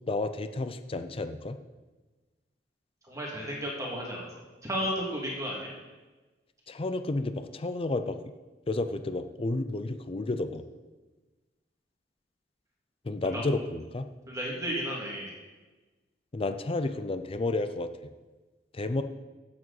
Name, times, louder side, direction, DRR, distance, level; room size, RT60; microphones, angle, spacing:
voice 1, 0.1-1.6 6.7-8.2 8.7-10.6 13.1-14.1 16.3-17.9 18.7-19.0, left 2 dB, 30° left, 10 dB, 0.5 m, -31 dB
voice 2, 3.1-4.3 4.6-5.7 13.3-13.4 14.3-15.3, equal, 20° right, -3 dB, 2.1 m, -33 dB
15.0 x 7.7 x 4.1 m, 1.2 s
head